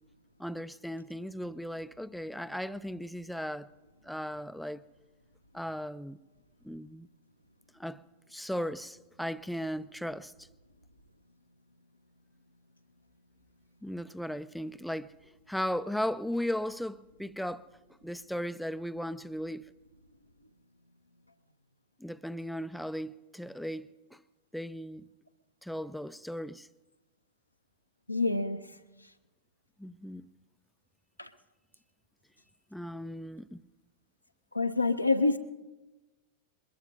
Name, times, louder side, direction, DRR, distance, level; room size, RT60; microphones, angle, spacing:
voice 1, 0.4-3.7 4.0-4.8 5.5-6.2 6.6-7.1 7.7-8.0 8.3-10.5 13.8-15.1 15.5-17.7 18.0-19.7 22.0-24.2 24.5-25.1 25.6-26.7 29.8-30.3 32.7-33.6, equal, ahead, 0.4 m, -36 dB
voice 2, 28.1-28.6 31.2-31.3 34.5-35.4, left 3 dB, 85° left, 0.8 m, -26 dB
21.5 x 21.5 x 2.7 m
figure-of-eight pair, 90°, 0 cm